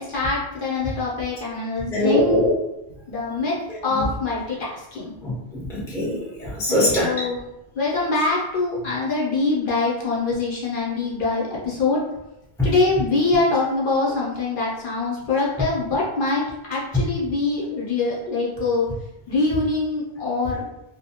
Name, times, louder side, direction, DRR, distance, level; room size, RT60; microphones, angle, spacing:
voice 1, 0.0-2.4 3.1-5.1 6.7-7.4 7.7-12.0 12.6-18.9 19.3-20.6, left 3 dB, 55° left, -5 dB, 0.8 m, -24 dB
voice 2, 1.9-2.5 3.9-4.0 5.2-7.1, left 1 dB, 5° left, -5 dB, 0.5 m, -22 dB
2.6 x 2.1 x 2.8 m, 0.89 s
omnidirectional pair, 1.1 m